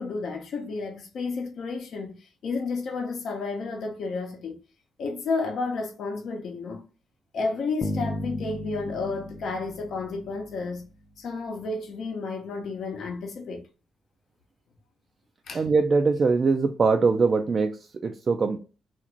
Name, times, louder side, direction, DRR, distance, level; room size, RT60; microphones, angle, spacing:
voice 1, 0.0-4.6 5.0-6.8 7.3-10.8 11.2-13.6 15.5-15.6, left 3 dB, 70° left, 0.7 m, -31 dB
Bass guitar, 7.8-10.9, left 1 dB, 20° left, 0.5 m, -35 dB
voice 2, 15.5-18.6, right 4 dB, 40° right, 0.3 m, -22 dB
2.5 x 2.4 x 3.0 m
cardioid pair, 100°, 0 cm